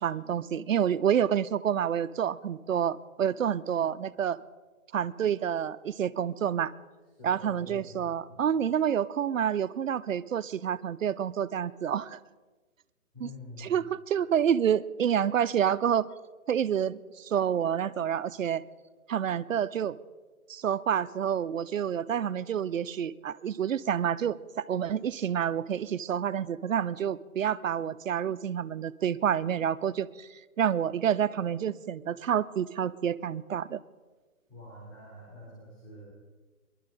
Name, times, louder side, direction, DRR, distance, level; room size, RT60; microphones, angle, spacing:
voice 1, 0.0-4.4 4.9-6.7 7.2-12.2 13.2-13.3 13.6-16.1 16.5-18.6 19.1-20.0 20.5-30.3 30.6-33.8, right 9 dB, 60° right, 14 dB, 0.6 m, -28 dB
voice 2, 7.1-8.0 8.3-8.4 13.1-13.8 34.5-36.1, left 1 dB, 20° left, -6 dB, 3.3 m, -47 dB
21.5 x 11.5 x 3.8 m, 1.3 s
hypercardioid pair, 150°, 45 cm